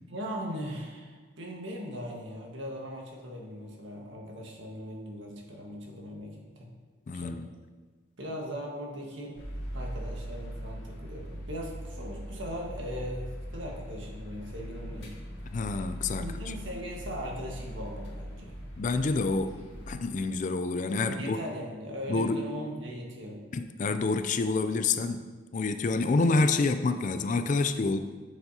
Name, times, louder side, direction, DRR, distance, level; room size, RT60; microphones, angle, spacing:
voice 1, 0.1-6.7 7.1-7.4 8.2-9.4 9.7-15.1 16.2-18.5 21.0-23.4, equal, 65° right, -1 dB, 1.5 m, -39 dB
voice 2, 7.1-7.5 15.5-16.5 18.8-19.6 19.9-21.4 22.1-22.4 23.5-25.2 25.5-28.0, left 3 dB, 40° left, 9 dB, 0.3 m, -28 dB
sound 1, 9.4-19.9, equal, 65° left, 2.1 m, -40 dB
9.9 x 7.1 x 2.8 m, 1.4 s
head